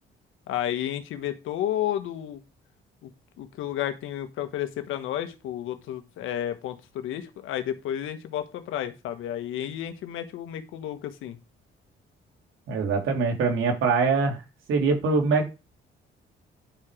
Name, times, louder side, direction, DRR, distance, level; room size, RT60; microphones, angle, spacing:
voice 1, 0.5-2.4 3.0-3.1 3.4-11.4, left 11 dB, 90° left, 9 dB, 1.4 m, -32 dB
voice 2, 12.7-14.4 14.7-15.5, right 4 dB, 80° right, 2 dB, 3.0 m, -23 dB
10.5 x 4.9 x 5.0 m, 0.28 s
cardioid pair, 90°, 20 cm